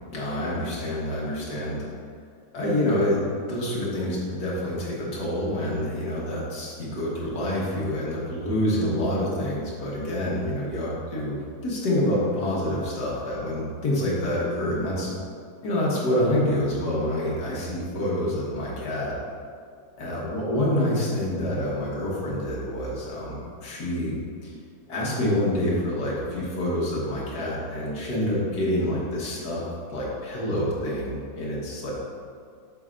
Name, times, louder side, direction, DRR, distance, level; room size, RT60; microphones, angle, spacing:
voice 1, 0.1-1.9 2.5-3.2 3.5-15.1 15.6-19.2 20.0-24.2 24.4-24.5 24.9-29.6 29.9-31.9, left 1 dB, 65° left, -5 dB, 1.9 m, -27 dB
7.7 x 6.5 x 2.6 m, 2.2 s
omnidirectional pair, 1.8 m